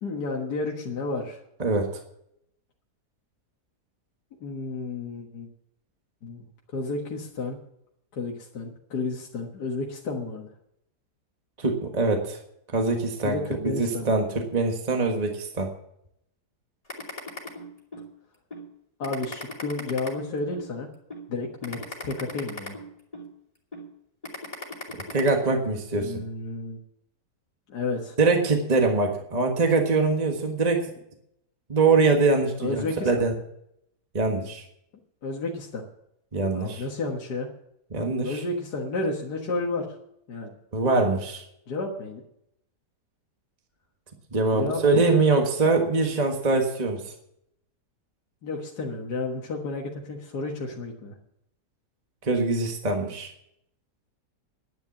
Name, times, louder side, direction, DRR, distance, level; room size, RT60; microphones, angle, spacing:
voice 1, 0.0-1.4 4.4-5.5 6.2-7.6 8.1-10.5 13.2-14.1 19.0-20.9 21.3-22.8 25.9-26.8 27.7-28.2 32.6-33.2 35.2-35.8 36.5-37.5 38.2-40.0 40.3-40.5 41.7-42.2 44.5-45.2 48.4-51.2, left 3 dB, 70° left, -1 dB, 2.1 m, -32 dB
voice 2, 11.6-12.4 12.7-13.4 13.6-14.3 14.5-15.7 25.1-26.2 28.2-30.9 31.7-33.3 34.1-34.6 36.3-36.8 37.9-38.4 40.7-41.4 44.3-47.1 52.2-53.3, right 3 dB, 25° right, 3 dB, 1.5 m, -23 dB
sound 1, 16.9-18.1 18.5-18.7 19.0-20.7 21.1-21.3 21.6-23.3 23.7-23.9 24.2-25.3, left 1 dB, 20° left, 2.8 m, -37 dB
10.5 x 10.5 x 7.2 m, 0.76 s
omnidirectional pair, 1.8 m